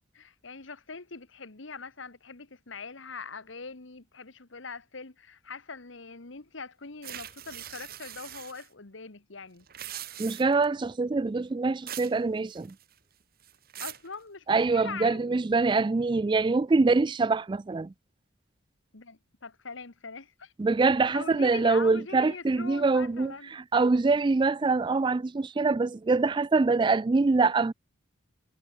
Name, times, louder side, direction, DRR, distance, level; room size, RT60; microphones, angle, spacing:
voice 1, 0.1-9.7 13.8-15.4 18.9-20.5 21.1-23.5, left 4 dB, 70° left, 1.5 m, -42 dB
sound 1, 7.0-8.7 9.6-10.7 11.9-12.2 12.5-13.0 13.4-14.1, right 12 dB, 50° right, 2.4 m, -41 dB
voice 2, 10.2-12.7 14.5-17.9 20.6-27.7, right 3 dB, 25° right, 0.3 m, -24 dB
head